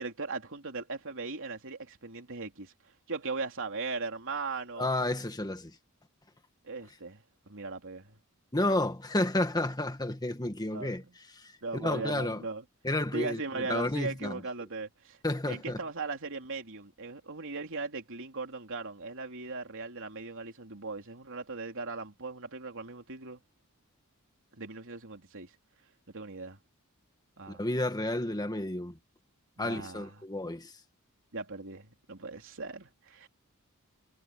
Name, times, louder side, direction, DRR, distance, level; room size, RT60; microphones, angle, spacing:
voice 1, 0.0-2.7 3.1-4.9 6.6-8.2 10.7-11.0 11.6-12.6 13.1-15.2 15.5-23.4 24.6-25.5 26.1-26.6 27.4-27.6 29.6-30.1 31.3-33.3, right 3 dB, 60° right, 3.4 m, -38 dB
voice 2, 4.8-5.7 8.5-12.4 12.8-14.4 15.2-15.8 27.5-29.0 29.6-30.7, left 1 dB, 20° left, 1.8 m, -31 dB
head